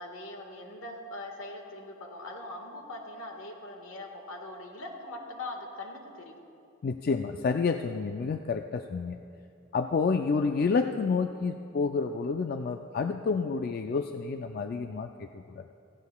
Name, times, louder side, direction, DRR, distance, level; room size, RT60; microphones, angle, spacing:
voice 1, 0.0-6.4, left 2 dB, 75° left, 2 dB, 1.5 m, -41 dB
voice 2, 6.8-9.2 9.7-15.7, left 4 dB, 45° left, 6 dB, 0.3 m, -29 dB
16.5 x 16.0 x 2.3 m, 2.6 s
head